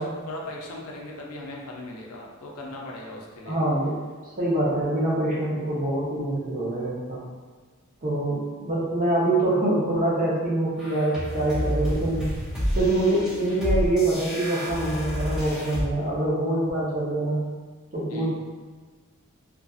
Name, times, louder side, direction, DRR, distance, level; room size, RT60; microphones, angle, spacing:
voice 1, 0.0-3.6 18.1-18.3, left 2 dB, 80° left, -1 dB, 0.5 m, -38 dB
voice 2, 3.5-4.0 4.3-7.2 8.0-12.3 12.8-17.4 17.9-18.3, right 1 dB, 40° right, -6 dB, 0.7 m, -25 dB
sound 1, 10.8-15.8, equal, 5° right, 0.8 m, -29 dB
2.5 x 2.5 x 2.3 m, 1.4 s
head